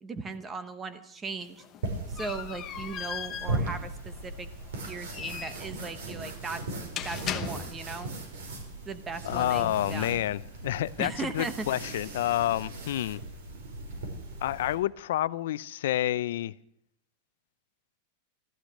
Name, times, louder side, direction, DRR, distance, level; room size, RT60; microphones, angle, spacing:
voice 1, 0.0-1.6 2.1-4.5 4.9-6.6 7.0-8.1 8.9-10.2 11.0-11.7, right 4 dB, 10° right, 0.9 m, -38 dB
sound 1, 1.4-8.0, left 9 dB, 25° left, 1.0 m, -39 dB
sound 2, 1.8-14.7, right 2 dB, 75° right, 5.3 m, -38 dB
voice 2, 9.2-13.2 14.4-16.5, left 13 dB, 65° left, 0.5 m, -29 dB
14.5 x 13.5 x 6.5 m
supercardioid pair, 175°, 0 cm